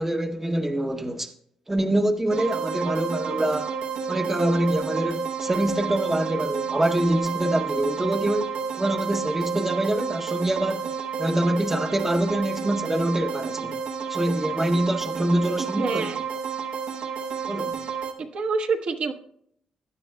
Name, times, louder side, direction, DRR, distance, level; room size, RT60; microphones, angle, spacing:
voice 1, 0.0-1.3 1.7-3.7 4.1-13.8 14.1-16.1 17.5-17.8, right 1 dB, 15° right, 0.7 m, -25 dB
sound 1, 2.3-18.1, right 6 dB, 85° right, 1.4 m, -30 dB
voice 2, 15.6-16.2 18.2-19.1, right 4 dB, 65° right, 1.0 m, -27 dB
16.5 x 10.0 x 2.2 m
cardioid pair, 90°, 2 cm